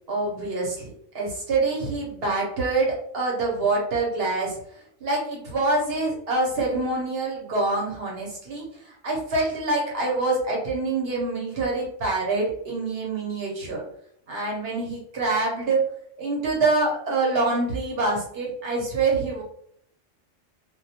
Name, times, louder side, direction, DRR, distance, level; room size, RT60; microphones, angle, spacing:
voice 1, 0.1-4.6 5.0-13.8 14.3-15.8 16.2-19.4, right 3 dB, 60° right, -2 dB, 0.9 m, -26 dB
2.2 x 2.1 x 2.7 m, 0.67 s
omnidirectional pair, 1.3 m